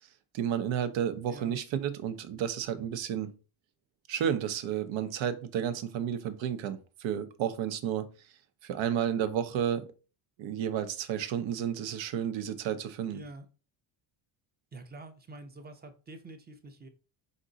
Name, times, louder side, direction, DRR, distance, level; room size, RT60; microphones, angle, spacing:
voice 1, 0.3-3.4 4.1-8.1 8.6-9.9 10.4-13.2, right 9 dB, 70° right, 0.8 m, -31 dB
voice 2, 13.1-13.5 14.7-16.9, right 2 dB, 20° right, 0.6 m, -47 dB
5.1 x 2.6 x 3.9 m
cardioid pair, 140°, 47 cm